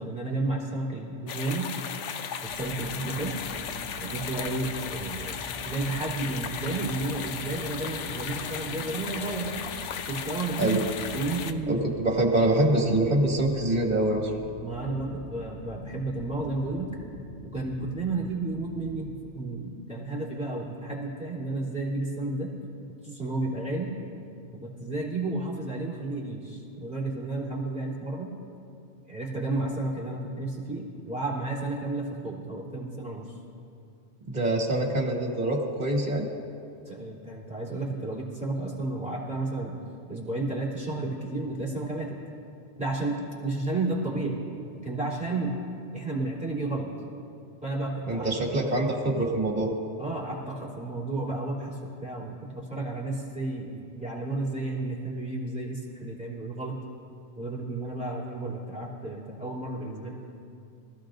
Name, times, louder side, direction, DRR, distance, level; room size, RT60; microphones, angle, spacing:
voice 1, 0.0-1.7 2.4-3.3 4.0-5.4 5.6-9.6 10.1-10.8 11.1-11.8 14.6-16.9 17.5-22.5 23.0-23.9 24.6-28.3 29.1-33.3 36.8-39.8 40.1-42.2 42.8-44.4 44.8-45.6 45.9-46.9 47.6-48.5 50.0-56.8 57.4-60.1, right 2 dB, 5° right, -6 dB, 3.1 m, -32 dB
sound 1, 1.3-11.5, left 7 dB, 85° left, 1.0 m, -36 dB
sound 2, 2.5-19.0, equal, 20° left, 1.9 m, -45 dB
voice 2, 11.7-14.3 34.3-36.3 48.1-49.7, right 1 dB, 40° right, 0 dB, 2.0 m, -25 dB
24.5 x 14.5 x 2.6 m, 2.5 s
omnidirectional pair, 1.2 m